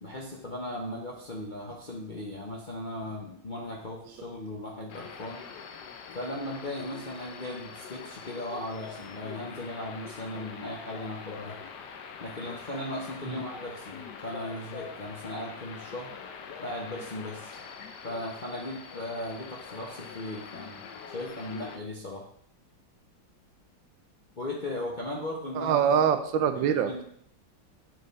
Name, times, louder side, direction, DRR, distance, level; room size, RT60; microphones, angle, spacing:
voice 1, 0.0-5.4 6.1-11.6 12.2-16.1 16.6-17.6 18.0-22.2 24.4-26.0 26.6-27.0, left 1 dB, 45° left, -4 dB, 0.6 m, -37 dB
sound 1, 4.9-21.8, left 6 dB, 70° left, 1.2 m, -44 dB
voice 2, 25.5-27.0, right 8 dB, 80° right, 9 dB, 1.3 m, -25 dB
7.6 x 3.6 x 4.0 m, 0.67 s
omnidirectional pair, 2.1 m